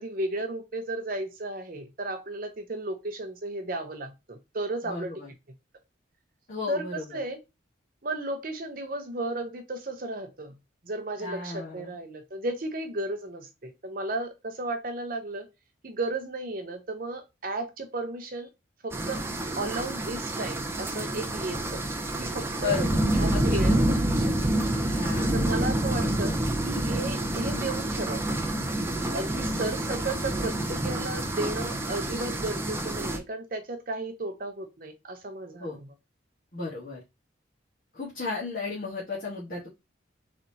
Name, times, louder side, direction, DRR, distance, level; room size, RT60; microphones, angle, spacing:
voice 1, 0.0-5.1 6.7-7.4 8.0-10.5 10.8-15.5 15.8-18.5 18.8-19.2 19.6-21.8 22.2-22.8 23.1-24.6 25.3-26.3 26.6-28.4 29.1-35.9, right 2 dB, 45° right, 6 dB, 0.7 m, -34 dB
voice 2, 4.8-5.3 6.5-7.2 11.2-11.9 22.6-23.0 23.3-23.8 24.8-25.5 28.9-29.5 35.6-35.8 36.5-37.0 37.9-39.7, left 4 dB, 45° left, -6 dB, 1.3 m, -34 dB
sound 1, 18.9-33.2, right 1 dB, 10° right, 0.4 m, -28 dB
3.9 x 3.3 x 2.7 m, 0.23 s
head